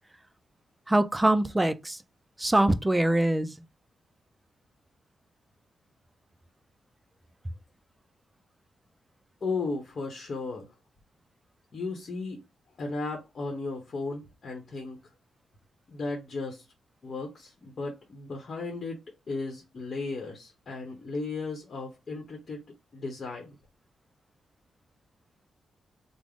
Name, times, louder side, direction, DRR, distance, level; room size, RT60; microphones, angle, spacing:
voice 1, 0.9-2.0 2.4-3.6, right 1 dB, 15° right, 0.3 m, -23 dB
voice 2, 9.4-10.7 11.7-12.4 12.8-15.0 15.9-16.7 17.0-19.0 19.3-22.6 22.9-23.6, left 3 dB, 50° left, 0.9 m, -35 dB
3.4 x 2.0 x 3.7 m
cardioid pair, 90°, 0 cm